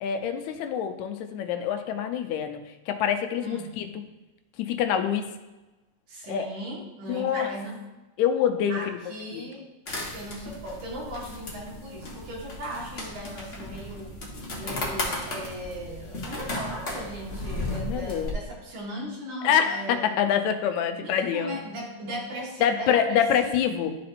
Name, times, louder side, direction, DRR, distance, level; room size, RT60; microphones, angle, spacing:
voice 1, 0.0-2.6 2.9-4.0 4.6-5.3 6.3-6.5 7.1-7.5 8.2-8.9 9.3-9.4 17.8-18.3 19.4-21.6 22.6-24.0, left 8 dB, 80° left, 7 dB, 1.9 m, -26 dB
voice 2, 3.4-3.8 6.1-7.8 8.7-9.6 10.1-14.2 14.6-20.1 21.0-23.8, right 1 dB, 85° right, -4 dB, 3.1 m, -38 dB
sound 1, 9.9-18.3, left 2 dB, 50° left, 0.8 m, -35 dB
12.0 x 4.2 x 2.5 m, 1.1 s
omnidirectional pair, 3.4 m